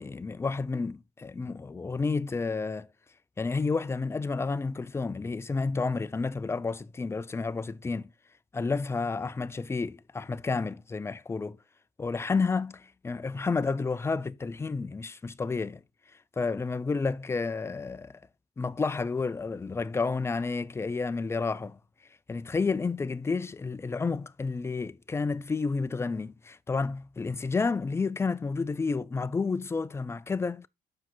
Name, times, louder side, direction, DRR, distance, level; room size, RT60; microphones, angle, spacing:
voice 1, 0.0-2.9 3.4-8.1 8.5-11.6 12.0-15.8 16.4-18.1 18.6-21.8 22.3-30.7, left 4 dB, 15° left, 0.5 m, -30 dB
7.3 x 4.9 x 3.8 m
cardioid pair, 110°, 17 cm